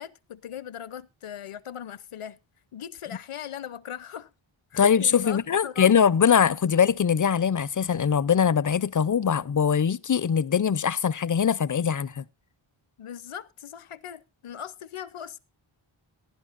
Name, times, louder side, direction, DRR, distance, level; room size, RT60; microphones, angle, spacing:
voice 1, 0.0-2.4 2.7-4.3 4.7-5.9 6.5-6.6 13.0-15.4, left 9 dB, 80° left, 0.8 m, -39 dB
voice 2, 4.8-12.2, left 7 dB, 40° left, 0.5 m, -22 dB
18.0 x 10.5 x 2.5 m
wide cardioid pair, 75°, 50 cm